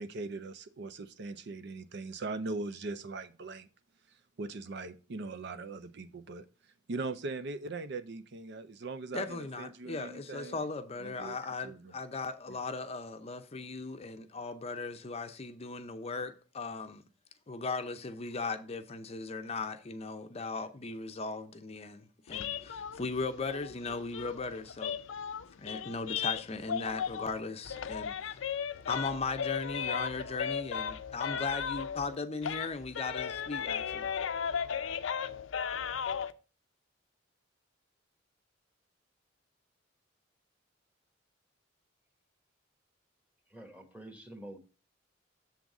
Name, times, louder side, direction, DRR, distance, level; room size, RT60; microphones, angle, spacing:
voice 1, 0.0-3.7 4.4-6.5 6.9-10.6 11.0-11.4 11.6-11.9, right 3 dB, 60° right, 0.5 m, -40 dB
voice 2, 9.1-17.0 17.5-24.9 25.6-28.4 28.9-34.1, left 4 dB, 30° left, 0.6 m, -38 dB
sound 1, 22.3-27.4 27.6-32.1 32.4-36.3, left 7 dB, 80° left, 0.5 m, -36 dB
voice 3, 43.5-44.6, right 1 dB, 5° right, 1.3 m, -47 dB
7.2 x 3.9 x 5.9 m
head